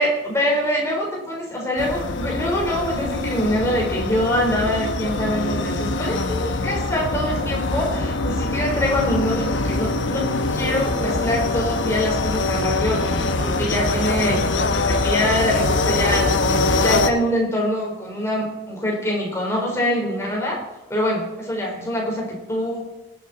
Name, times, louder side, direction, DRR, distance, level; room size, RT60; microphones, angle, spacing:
voice 1, 0.0-14.5 14.8-16.3 16.8-20.6 20.9-22.8, equal, 15° left, -2 dB, 3.8 m, -24 dB
sound 1, 1.8-17.1, left 2 dB, 80° left, 1.0 m, -23 dB
19.5 x 9.6 x 4.1 m, 0.97 s
head